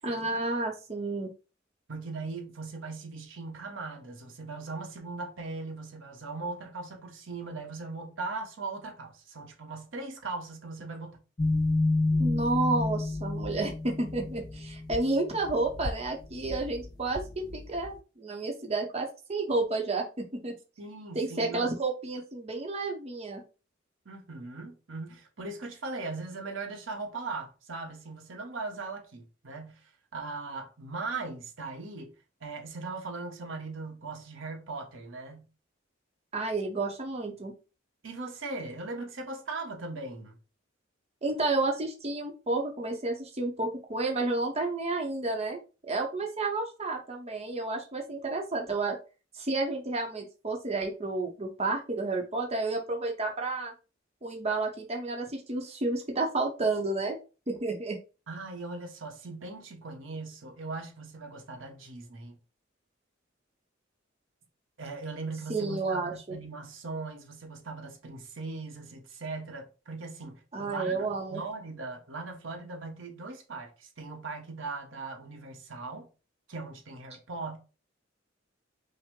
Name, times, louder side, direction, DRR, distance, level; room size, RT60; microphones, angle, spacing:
voice 1, 0.0-1.3 12.2-20.5 21.1-23.4 36.3-37.5 41.2-45.6 45.9-49.0 49.3-53.7 54.2-57.2 57.5-58.0 65.5-66.4 70.5-71.4, right 3 dB, 35° right, 0.8 m, -31 dB
voice 2, 1.9-11.2 20.8-21.7 24.0-29.8 30.1-32.1 32.4-35.5 38.0-40.4 58.3-62.4 64.8-76.1 76.5-77.6, right 3 dB, 80° right, 1.0 m, -39 dB
sound 1, 11.4-17.9, left 2 dB, 20° left, 0.3 m, -30 dB
5.6 x 2.1 x 3.6 m
head